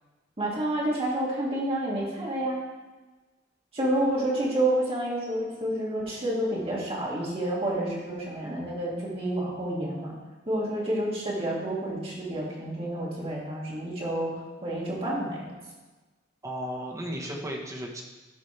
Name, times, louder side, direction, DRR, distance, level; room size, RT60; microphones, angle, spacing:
voice 1, 0.4-2.6 3.7-10.1 10.5-14.3 14.6-15.4, right 1 dB, 30° right, -5 dB, 2.5 m, -29 dB
voice 2, 16.4-18.0, equal, 15° right, -1 dB, 1.3 m, -34 dB
13.5 x 5.1 x 3.4 m, 1.2 s
head